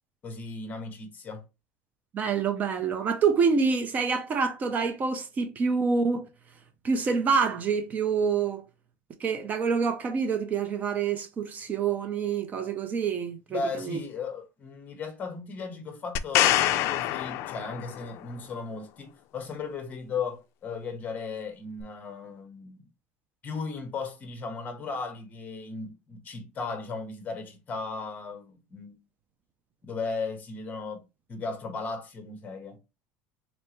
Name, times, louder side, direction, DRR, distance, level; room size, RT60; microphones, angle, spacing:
voice 1, 0.2-1.4 13.5-22.8 23.4-29.0 29.8-31.0 31.3-32.8, left 4 dB, 30° left, 1.2 m, -36 dB
voice 2, 2.1-6.3 6.8-8.6 9.2-14.0, right 5 dB, 30° right, 0.6 m, -27 dB
sound 1, 16.2-18.1 21.8-21.9, left 13 dB, 55° left, 0.4 m, -25 dB
4.1 x 3.4 x 3.0 m
cardioid pair, 145°, 6 cm